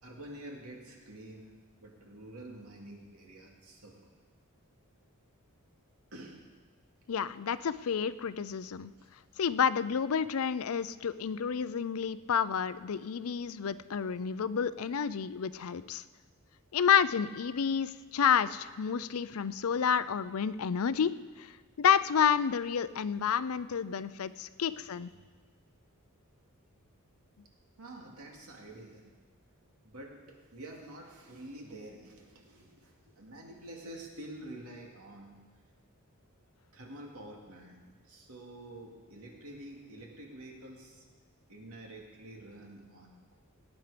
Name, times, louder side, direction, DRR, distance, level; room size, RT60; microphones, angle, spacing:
voice 1, 0.0-4.2 6.1-6.4 9.0-9.1 24.7-24.8 25.3-25.4 27.8-29.1 29.8-35.4 36.7-41.0 41.5-43.1, right 1 dB, 80° right, 0 dB, 2.5 m, -48 dB
voice 2, 7.1-8.9 9.4-16.0 16.7-21.5 21.8-25.1, left 7 dB, 70° left, 16 dB, 0.5 m, -30 dB
18.5 x 9.6 x 5.1 m, 1.4 s
head